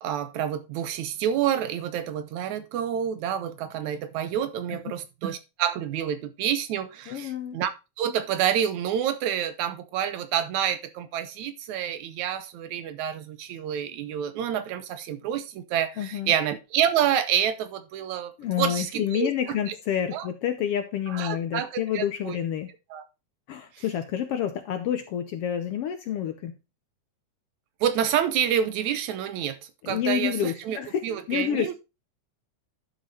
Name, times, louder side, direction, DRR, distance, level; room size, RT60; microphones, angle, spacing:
voice 1, 0.0-7.7 8.0-18.3 18.6-19.7 20.1-20.3 21.1-22.4 22.9-23.0 23.8-23.9 27.8-29.6 29.9-31.7, right 9 dB, 80° right, 2.3 m, -28 dB
voice 2, 7.1-7.6 16.0-16.3 18.4-22.7 23.5-26.5 29.8-31.0 31.3-31.7, left 10 dB, 70° left, 1.5 m, -29 dB
11.0 x 5.5 x 4.2 m
omnidirectional pair, 3.3 m